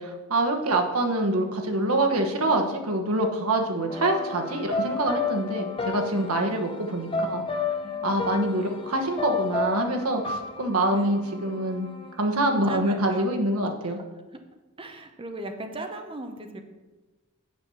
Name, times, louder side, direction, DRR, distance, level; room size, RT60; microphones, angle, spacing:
voice 1, 0.0-7.6 8.0-11.9 12.2-14.0, right 1 dB, 80° right, 4 dB, 1.2 m, -25 dB
sound 1, 3.9-12.1, left 4 dB, 25° left, 0.8 m, -32 dB
voice 2, 12.7-13.3 13.8-14.0 14.3-14.4 14.8-16.6, right 2 dB, 25° right, 6 dB, 0.9 m, -37 dB
6.7 x 5.6 x 7.0 m, 1.2 s
head